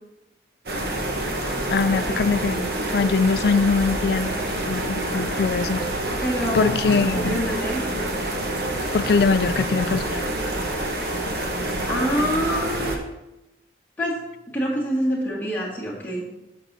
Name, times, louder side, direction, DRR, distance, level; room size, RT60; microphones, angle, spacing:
sound 1, 0.7-13.0, right 1 dB, 60° right, 1.2 m, -27 dB
voice 1, 1.7-4.3 4.7-5.8 6.5-7.4 8.9-10.2, left 4 dB, 60° left, 15 dB, 0.3 m, -22 dB
voice 2, 6.2-7.8 11.8-13.1 14.0-14.1 14.5-16.3, equal, 10° left, -7 dB, 2.0 m, -26 dB
13.0 x 6.2 x 2.8 m, 0.96 s
head